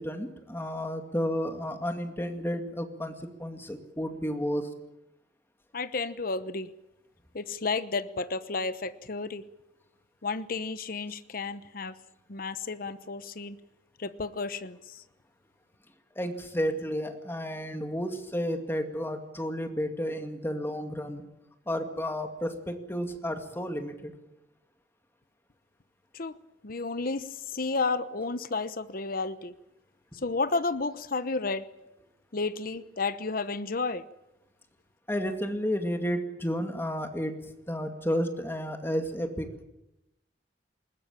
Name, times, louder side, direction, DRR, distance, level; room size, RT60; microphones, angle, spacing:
voice 1, 0.0-4.7 16.2-21.2 21.7-24.1 35.1-39.6, equal, 15° left, 6 dB, 2.2 m, -32 dB
voice 2, 5.7-6.7 7.3-9.4 10.2-11.9 12.3-13.6 14.0-14.8 26.1-26.3 26.6-27.3 27.5-29.5 30.2-31.6 32.3-34.0, left 3 dB, 50° left, 13 dB, 1.0 m, -31 dB
20.5 x 20.5 x 8.9 m, 0.91 s
head